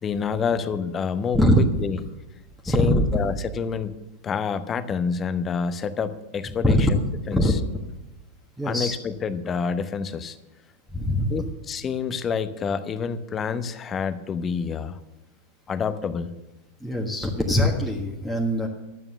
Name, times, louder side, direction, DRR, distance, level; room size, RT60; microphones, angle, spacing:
voice 1, 0.0-2.0 2.6-6.9 7.3-7.6 8.6-10.4 11.3-15.0 15.7-16.3, left 6 dB, 25° left, 12 dB, 0.9 m, -28 dB
voice 2, 8.6-8.9 10.9-11.3 16.8-18.7, equal, ahead, -3 dB, 1.5 m, -22 dB
12.5 x 8.9 x 6.9 m, 0.98 s
figure-of-eight pair, 90°, 0 cm